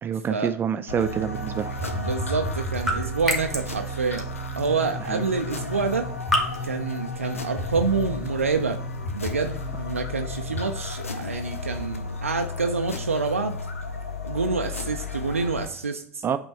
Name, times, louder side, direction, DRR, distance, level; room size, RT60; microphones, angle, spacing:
voice 1, 0.0-1.7 5.1-5.2 16.2-16.4, right 8 dB, 30° right, 10 dB, 0.4 m, -27 dB
sound 1, 0.9-15.7, left 3 dB, 85° left, 0.6 m, -34 dB
sound 2, 1.2-10.6, right 1 dB, 40° left, 1.5 m, -36 dB
sound 3, 1.4-14.5, equal, ahead, 1.7 m, -36 dB
voice 2, 1.8-4.3 4.6-6.1 6.6-8.8 9.1-13.6 14.2-16.2, right 4 dB, 90° right, 5 dB, 0.4 m, -27 dB
8.4 x 3.0 x 4.0 m, 0.65 s
figure-of-eight pair, 70°, 7 cm